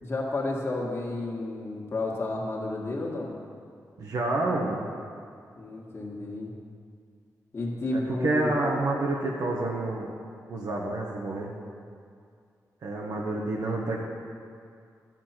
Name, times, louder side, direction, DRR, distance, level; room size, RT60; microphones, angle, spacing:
voice 1, 0.0-3.3 5.6-6.5 7.5-8.6, left 2 dB, 35° left, -3 dB, 1.8 m, -31 dB
voice 2, 4.0-4.8 7.9-10.1 10.5-11.5 12.8-14.1, right 2 dB, 70° right, -2 dB, 1.3 m, -28 dB
12.0 x 7.5 x 5.8 m, 2.3 s
wide cardioid pair, 130°, 6 cm